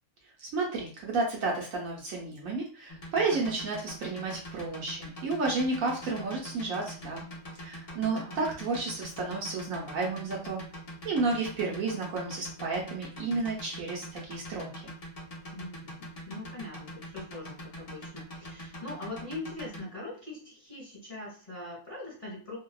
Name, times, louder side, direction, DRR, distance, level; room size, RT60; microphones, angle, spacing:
voice 1, 0.4-7.2 7.6-10.6 11.0-14.9, right 3 dB, 70° right, -3 dB, 1.0 m, -32 dB
sound 1, 2.9-19.8, equal, 75° left, 0.3 m, -43 dB
voice 2, 8.1-8.4 15.5-22.6, left 2 dB, 25° left, -6 dB, 1.2 m, -42 dB
2.6 x 2.2 x 2.3 m, 0.41 s
omnidirectional pair, 1.6 m